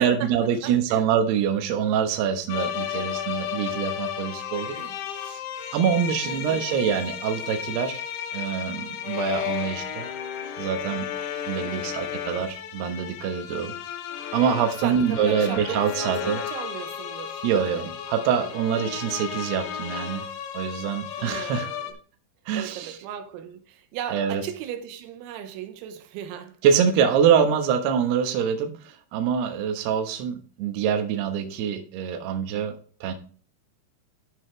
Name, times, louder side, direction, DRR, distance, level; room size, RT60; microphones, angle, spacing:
voice 1, 0.0-4.7 5.2-5.4 5.7-8.0 8.3-10.1 10.6-11.1 11.5-13.7 14.3-16.4 17.4-20.3 20.5-21.7 22.5-23.0 24.1-24.4 26.6-32.7 33.0-33.1, right 7 dB, 70° right, 2.8 m, -25 dB
voice 2, 0.6-1.1 2.9-3.3 4.6-5.3 6.2-6.7 11.4-12.2 14.8-17.9 18.9-19.1 21.2-21.9 22.5-26.6, right 9 dB, 90° right, 3.9 m, -37 dB
sound 1, 2.5-21.9, left 9 dB, 75° left, 2.4 m, -33 dB
13.0 x 5.7 x 3.2 m
omnidirectional pair, 5.9 m